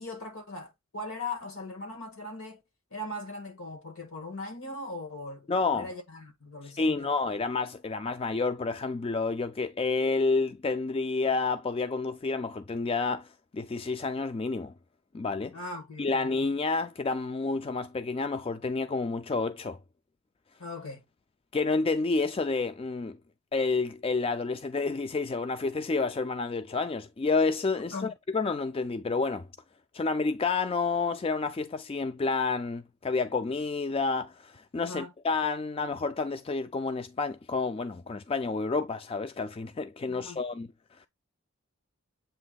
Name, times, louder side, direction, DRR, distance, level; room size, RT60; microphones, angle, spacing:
voice 1, 0.0-2.6 2.9-5.5 5.7-7.1 15.5-16.3 20.6-21.0 27.9-28.1 34.8-35.1 40.1-40.4, left 2 dB, 70° left, 1.8 m, -39 dB
voice 2, 5.5-5.9 6.6-14.7 15.1-15.6 16.0-19.8 21.5-23.2 23.5-29.5 29.9-40.7 41.0-41.1, left 4 dB, 25° left, 0.3 m, -29 dB
7.9 x 3.0 x 3.9 m
head